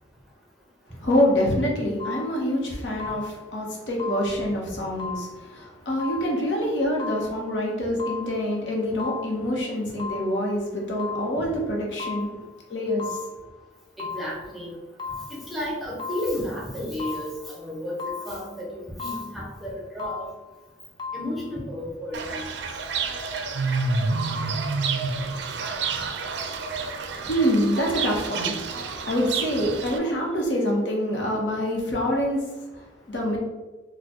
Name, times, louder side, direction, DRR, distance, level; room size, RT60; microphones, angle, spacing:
voice 1, 1.0-12.4 12.7-13.2 26.8-28.6 28.9-33.4, equal, 75° left, -2 dB, 0.9 m, -26 dB
sound 1, 2.0-2.6 3.0-3.6 4.0-4.6 5.0-5.6 6.0-6.6 7.0-7.6 8.0-8.6 9.0-9.6 10.0-10.6 11.0-11.6 12.0-12.6 13.0-13.6 14.0-14.6 15.0-15.6 16.0-16.6 17.0-17.6 18.0-18.6 19.0-19.6 20.0-20.6 21.0-21.3, left 5 dB, 25° left, 0.4 m, -37 dB
voice 2, 14.0-14.8 15.3-20.3 21.1-22.5, left 1 dB, ahead, -5 dB, 0.9 m, -33 dB
Fowl / Bird, 22.1-30.0, right 4 dB, 65° right, 0.4 m, -29 dB
4.2 x 2.3 x 2.9 m, 1.2 s
head